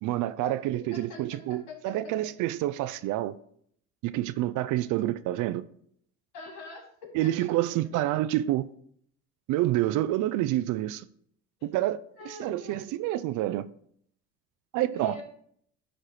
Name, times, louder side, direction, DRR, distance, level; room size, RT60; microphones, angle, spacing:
voice 1, 0.0-3.4 4.0-5.6 7.1-8.7 9.5-11.1 11.6-12.0 12.2-13.6 14.7-15.2, right 14 dB, 70° right, 0.5 m, -28 dB
voice 2, 6.3-7.5 12.2-13.0 14.9-15.2, left 4 dB, 80° left, 3.9 m, -44 dB
11.5 x 4.4 x 4.9 m
supercardioid pair, 80°, 32 cm